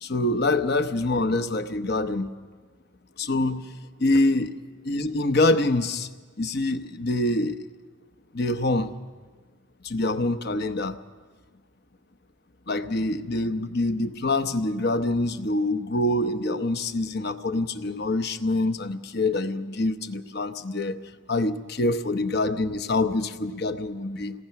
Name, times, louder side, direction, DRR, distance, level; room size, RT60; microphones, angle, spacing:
voice 1, 0.0-2.3 3.2-3.7 4.0-4.5 4.8-6.1 6.4-7.6 8.3-8.9 9.8-11.0 12.7-21.0 21.3-24.3, left 2 dB, 50° left, 9 dB, 0.9 m, -25 dB
27.0 x 18.5 x 5.8 m, 1.4 s
head